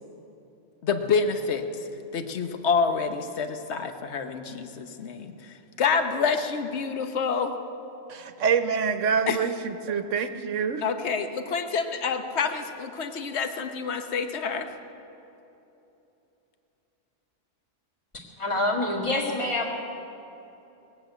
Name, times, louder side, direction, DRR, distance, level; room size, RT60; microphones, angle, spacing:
voice 1, 0.8-7.5 9.3-9.5 10.8-14.7, left 5 dB, 60° left, 7 dB, 1.2 m, -28 dB
voice 2, 8.1-10.8, right 6 dB, 75° right, 10 dB, 1.1 m, -26 dB
voice 3, 18.4-19.7, left 2 dB, 25° left, -2 dB, 1.9 m, -26 dB
20.0 x 7.9 x 8.9 m, 3.0 s
omnidirectional pair, 1.3 m